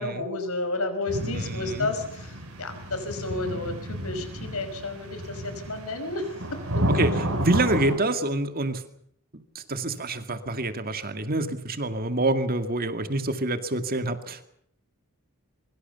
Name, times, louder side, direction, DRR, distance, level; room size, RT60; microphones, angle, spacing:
voice 1, 0.0-2.3 2.6-6.9, left 2 dB, 70° left, 8 dB, 5.4 m, -31 dB
sound 1, 1.1-7.9, equal, 75° right, 7.9 m, -31 dB
voice 2, 1.3-1.9 6.9-8.8 9.5-14.4, right 2 dB, 40° right, 9 dB, 2.2 m, -27 dB
24.0 x 23.5 x 7.0 m, 0.68 s
head